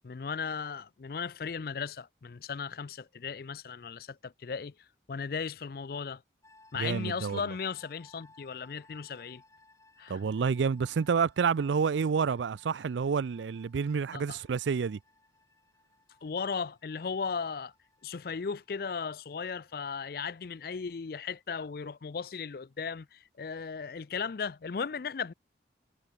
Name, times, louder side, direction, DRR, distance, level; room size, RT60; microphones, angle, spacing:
voice 1, 0.0-4.7 5.1-6.2 6.7-9.4 10.0-10.2 14.1-14.4 16.2-17.7 18.0-25.3, left 5 dB, 55° left, 0.4 m, -36 dB
sound 1, 6.4-21.4, left 2 dB, 15° left, 5.0 m, -63 dB
voice 2, 6.7-7.4 10.1-15.0, right 6 dB, 85° right, 0.4 m, -29 dB
head